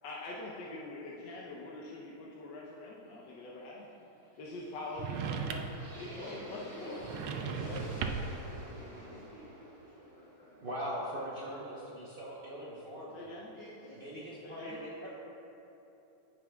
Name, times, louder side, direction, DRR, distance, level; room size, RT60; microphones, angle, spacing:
voice 1, 0.0-4.1 4.4-5.7 5.9-7.0 7.6-7.8 13.1-13.5 14.4-14.8, left 2 dB, 65° left, -4 dB, 1.3 m, -44 dB
sound 1, 4.2-12.1, right 2 dB, 45° right, 2.1 m, -50 dB
sound 2, 5.0-5.9 7.0-8.4, right 6 dB, 80° right, 1.4 m, -37 dB
voice 2, 6.0-8.2 8.7-10.6 10.9-11.2 13.5-15.1, left 1 dB, 45° left, -11 dB, 2.4 m, -50 dB
voice 3, 10.6-13.2 14.0-15.1, equal, 65° right, -6 dB, 0.5 m, -41 dB
15.0 x 6.1 x 2.3 m, 2.9 s
omnidirectional pair, 2.4 m